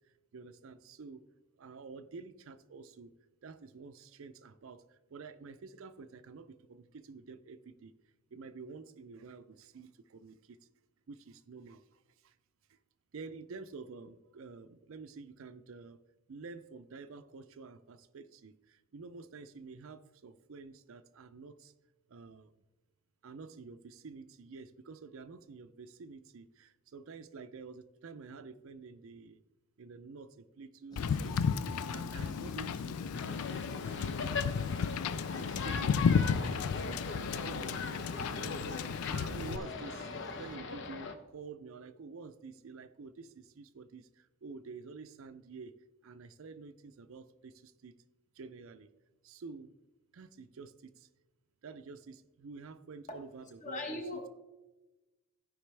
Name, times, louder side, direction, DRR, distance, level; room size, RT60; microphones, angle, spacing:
voice 1, 0.3-1.2 1.6-3.1 3.4-4.8 5.1-7.9 8.3-10.6 11.1-11.8 12.2-12.3 13.1-16.0 16.3-21.7 22.1-22.5 23.2-29.4 29.8-31.4 31.9-34.9 35.3-37.1 37.4-38.8 39.1-40.1 40.4-45.7 46.0-47.9 48.4-48.9 49.2-49.7 50.1-51.1 51.6-54.3, right 4 dB, 65° right, 11 dB, 0.4 m, -49 dB
sound 1, 30.9-40.6, equal, 20° left, 0.7 m, -54 dB
Wind / Boat Water vehicle, 31.0-39.6, left 6 dB, 85° left, 0.4 m, -33 dB
sound 2, 33.1-41.1, left 4 dB, 55° left, 0.7 m, -40 dB
voice 2, 53.6-54.3, left 2 dB, 35° left, 4 dB, 1.2 m, -39 dB
15.0 x 5.1 x 3.3 m, 1.1 s
head